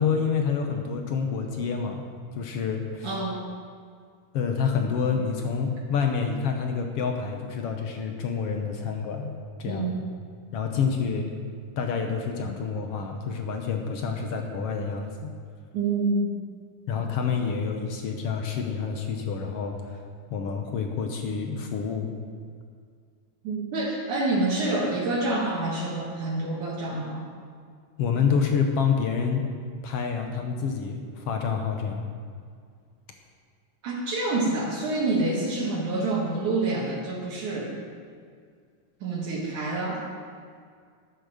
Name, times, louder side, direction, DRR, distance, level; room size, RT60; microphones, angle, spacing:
voice 1, 0.0-2.0 2.3-3.1 4.3-9.9 10.5-11.3 11.8-15.3 16.9-19.9 20.3-22.1 28.0-29.5 29.8-32.1, left 6 dB, 65° left, 3 dB, 1.5 m, -28 dB
voice 2, 3.0-3.4 9.6-10.0 15.7-16.4 23.4-27.2 33.8-37.7 39.0-40.0, right 2 dB, 70° right, -4 dB, 3.1 m, -27 dB
13.0 x 9.1 x 6.4 m, 2.1 s
omnidirectional pair, 3.7 m